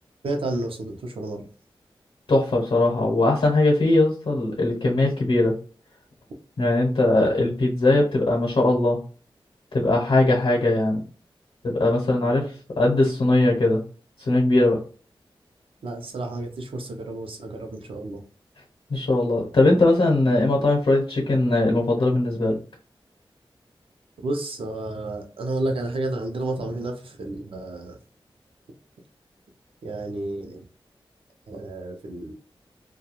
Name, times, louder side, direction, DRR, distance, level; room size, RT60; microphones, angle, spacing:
voice 1, 0.2-1.4 12.2-12.3 15.8-18.2 24.2-28.0 29.8-30.6 31.5-32.3, right 2 dB, 80° right, 3 dB, 0.6 m, -31 dB
voice 2, 2.3-5.5 6.6-9.0 9.7-11.0 11.6-13.8 14.2-14.8 18.9-22.6, left 2 dB, 80° left, -1 dB, 0.7 m, -20 dB
2.3 x 2.2 x 2.8 m, 0.40 s
wide cardioid pair, 120°, 9 cm